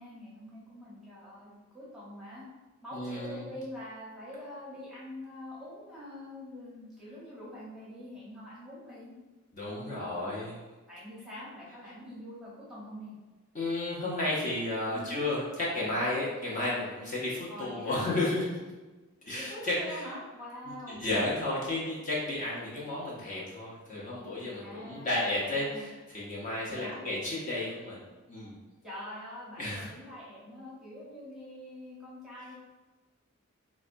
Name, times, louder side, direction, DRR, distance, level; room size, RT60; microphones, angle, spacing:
voice 1, 0.0-2.4 2.8-9.1 9.7-10.4 10.9-13.1 14.9-15.2 17.5-18.0 19.3-21.0 24.6-25.8 26.7-27.0 28.8-32.6, left 1 dB, 5° right, -8 dB, 0.8 m, -45 dB
voice 2, 2.9-3.4 9.5-10.6 13.5-18.6 19.3-20.0 20.7-28.6 29.6-29.9, left 2 dB, 35° left, -6 dB, 0.6 m, -33 dB
4.0 x 2.2 x 2.5 m, 1.2 s
head